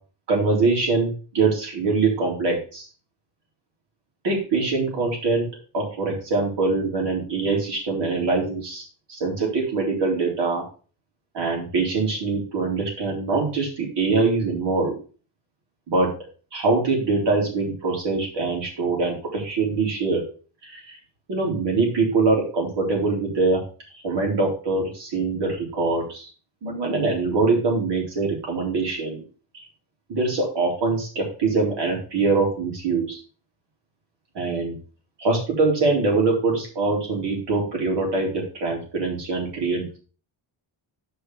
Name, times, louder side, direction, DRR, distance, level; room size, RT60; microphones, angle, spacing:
voice 1, 0.3-2.9 4.2-5.5 5.7-8.8 9.1-10.6 11.3-14.9 15.9-16.1 16.5-20.2 20.6-21.0 21.3-23.6 23.9-26.3 26.6-29.2 30.1-33.2 34.3-34.7 35.2-40.0, right 3 dB, 65° right, -1 dB, 4.1 m, -23 dB
6.8 x 5.3 x 6.2 m, 0.38 s
wide cardioid pair, 155°, 45 cm